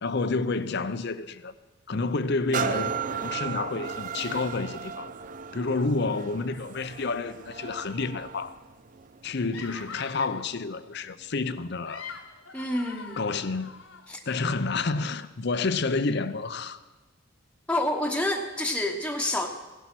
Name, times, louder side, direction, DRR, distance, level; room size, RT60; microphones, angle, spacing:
voice 1, 0.0-1.5 1.9-5.1 5.5-8.6 9.2-12.1 13.2-13.8 14.3-16.8, left 3 dB, 55° left, 0.7 m, -29 dB
sound 1, 2.5-10.1 10.7-10.8, right 7 dB, 40° right, 0.5 m, -35 dB
sound 2, 9.5-10.5 11.7-14.1, left 5 dB, 75° left, 1.5 m, -43 dB
voice 2, 12.5-13.2 14.1-14.2 17.7-19.5, left 1 dB, 5° left, 1.1 m, -28 dB
16.5 x 11.5 x 6.1 m
head